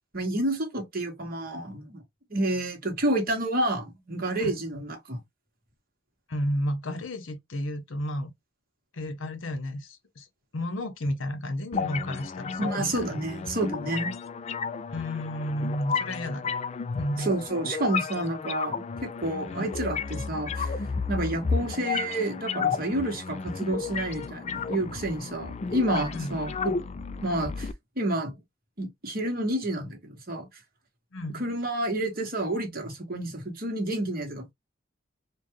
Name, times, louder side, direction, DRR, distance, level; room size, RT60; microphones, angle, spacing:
voice 1, 0.1-2.0 2.3-5.2 12.6-14.1 17.2-20.7 21.1-26.7 27.2-27.7 28.0-28.4 28.8-30.5 31.3-34.5, right 1 dB, 50° right, 1.4 m, -29 dB
voice 2, 6.3-8.3 8.9-10.3 10.5-13.0 14.9-16.6 16.9-17.3 19.5-19.6 26.1-26.4 31.1-31.4, left 1 dB, 80° left, 0.9 m, -32 dB
sound 1, 11.7-27.7, left 5 dB, 35° left, 0.3 m, -33 dB
4.4 x 2.3 x 3.1 m
head